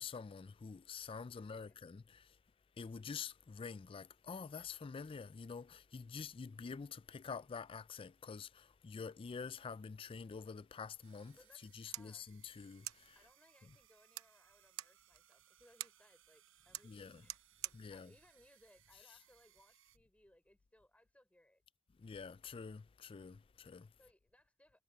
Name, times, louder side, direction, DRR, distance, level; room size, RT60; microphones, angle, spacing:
voice 1, 0.0-2.3 2.8-11.4 11.7-13.1 16.8-17.2 17.7-18.1 22.0-23.9, left 5 dB, 25° left, 0.3 m, -47 dB
voice 2, 1.4-1.8 11.3-12.3 13.2-21.6 24.0-24.8, left 1 dB, 5° left, 5.5 m, -68 dB
sound 1, 11.0-20.0, right 12 dB, 70° right, 4.8 m, -69 dB
sound 2, 11.5-19.5, right 15 dB, 85° right, 0.7 m, -52 dB
head